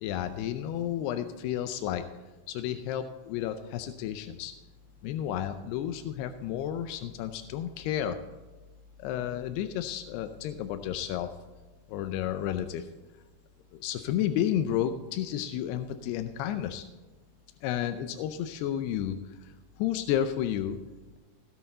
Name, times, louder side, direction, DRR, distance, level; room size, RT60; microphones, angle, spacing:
voice 1, 0.0-2.1 2.5-4.5 5.0-8.2 9.0-11.3 11.9-12.9 13.7-16.8 17.6-19.5 19.8-20.8, left 10 dB, 90° left, 8 dB, 2.7 m, -31 dB
16.5 x 8.0 x 4.3 m, 1.2 s
omnidirectional pair, 4.6 m